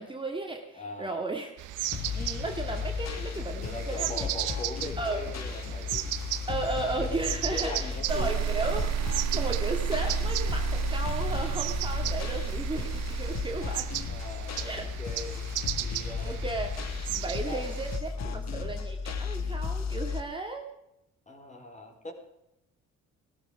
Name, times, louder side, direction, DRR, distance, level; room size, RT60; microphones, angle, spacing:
voice 1, 0.0-1.5 1.9-4.3 5.0-5.2 6.5-9.0 9.3-13.9 14.7-14.9 16.2-16.8 17.1-20.7, right 2 dB, 15° right, 2 dB, 2.1 m, -35 dB
voice 2, 0.7-1.2 3.6-6.3 7.3-8.7 14.1-16.4 17.4-18.5 21.3-22.1, left 2 dB, 25° left, 4 dB, 4.0 m, -41 dB
sound 1, 1.6-18.0, right 14 dB, 85° right, 1.0 m, -37 dB
sound 2, 1.9-20.2, left 5 dB, 60° left, 1.5 m, -34 dB
sound 3, 8.1-15.2, right 11 dB, 60° right, 1.3 m, -32 dB
17.0 x 13.0 x 4.9 m, 0.85 s
cardioid pair, 90°, 30 cm